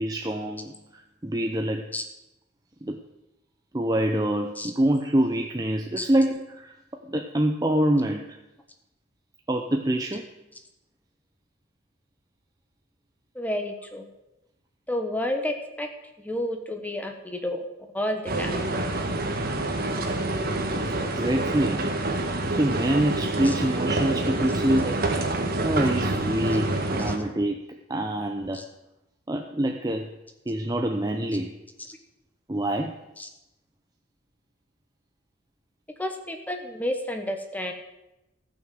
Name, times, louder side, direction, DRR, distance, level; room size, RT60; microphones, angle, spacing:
voice 1, 0.0-1.8 2.8-3.0 3.7-6.7 7.0-8.4 9.5-10.3 21.0-21.9 22.5-27.6 27.9-28.6 29.3-30.1 30.5-31.5 32.5-33.0, right 1 dB, 20° right, 3 dB, 0.7 m, -26 dB
voice 2, 13.3-14.1 14.9-15.9 16.2-17.6 17.9-18.6 23.4-23.5 27.1-27.2 28.5-28.6 31.9-32.0 33.2-33.3 36.0-37.7, left 1 dB, 10° left, 4 dB, 1.3 m, -30 dB
sound 1, 18.3-27.2, right 2 dB, 50° right, 1.5 m, -27 dB
14.5 x 6.4 x 7.6 m, 0.93 s
head